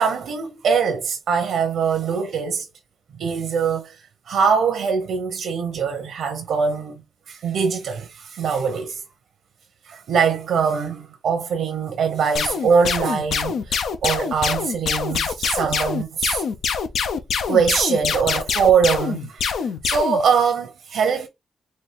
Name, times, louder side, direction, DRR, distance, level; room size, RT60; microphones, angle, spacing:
voice 1, 0.0-2.6 3.2-4.0 4.3-7.0 7.3-9.0 9.9-16.4 17.5-21.3, right 6 dB, 85° right, 0.8 m, -22 dB
sound 1, 12.3-20.2, left 6 dB, 85° left, 0.6 m, -24 dB
4.3 x 2.6 x 3.2 m
cardioid pair, 95°, 0 cm